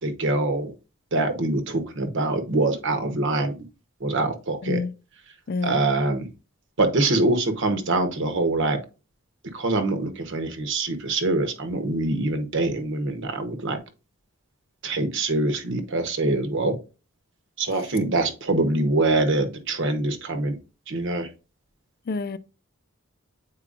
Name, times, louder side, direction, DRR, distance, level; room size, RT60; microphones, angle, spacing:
voice 1, 0.0-0.7 1.1-3.5 4.0-4.8 5.6-6.3 6.8-8.8 9.5-13.8 14.8-16.7 17.6-20.6 20.9-21.3, right 2 dB, 60° right, 1.0 m, -24 dB
voice 2, 5.5-5.8 17.7-17.9 22.1-22.4, left 4 dB, 45° left, 0.4 m, -28 dB
8.5 x 4.6 x 2.5 m
head